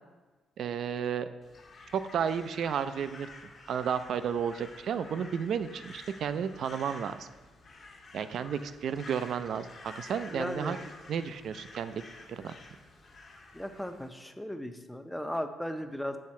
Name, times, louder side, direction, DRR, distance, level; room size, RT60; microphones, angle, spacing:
voice 1, 0.6-1.3 1.9-3.3 3.7-7.3 8.1-10.8 11.1-12.0 12.3-12.5, right 7 dB, 65° right, 12 dB, 0.3 m, -32 dB
Crow, 1.4-14.1, left 3 dB, 50° left, 1.2 m, -50 dB
voice 2, 10.3-10.8 13.5-16.2, equal, 5° left, 8 dB, 0.5 m, -36 dB
7.7 x 3.6 x 4.2 m, 1.3 s
cardioid pair, 90°, 0 cm